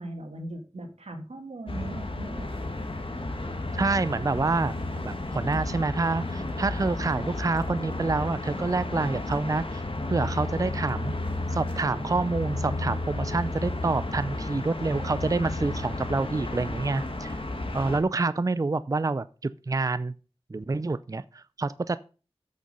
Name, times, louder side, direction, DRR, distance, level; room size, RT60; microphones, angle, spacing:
voice 1, 0.0-2.6, right 2 dB, 90° right, 5 dB, 1.8 m, -39 dB
sound 1, 1.7-18.0, left 2 dB, 55° left, 1.8 m, -32 dB
voice 2, 3.7-4.7 5.0-9.8 10.1-11.1 11.5-17.4 17.7-20.1 20.5-22.0, right 3 dB, 35° right, 16 dB, 0.4 m, -27 dB
8.3 x 6.4 x 5.4 m, 0.36 s
wide cardioid pair, 45°, 11 cm